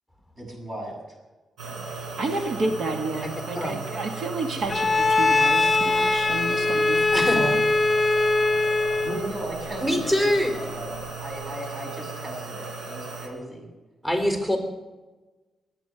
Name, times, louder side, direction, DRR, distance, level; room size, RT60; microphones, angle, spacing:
voice 1, 0.4-1.2 9.0-10.9 11.2-13.7, right 1 dB, 35° right, 0 dB, 6.8 m, -36 dB
sound 1, 1.6-13.3, right 3 dB, 85° right, 3.9 m, -36 dB
voice 2, 2.2-7.0 7.4-7.6, right 3 dB, 65° right, 5 dB, 1.7 m, -30 dB
voice 3, 3.2-3.8 7.1-7.5 9.8-10.6 14.0-14.6, left 1 dB, 15° right, 4 dB, 4.0 m, -24 dB
Bowed string instrument, 4.7-9.3, left 3 dB, 25° left, 1.3 m, -21 dB
23.0 x 9.1 x 6.7 m, 1.2 s
cardioid pair, 95°, 0 cm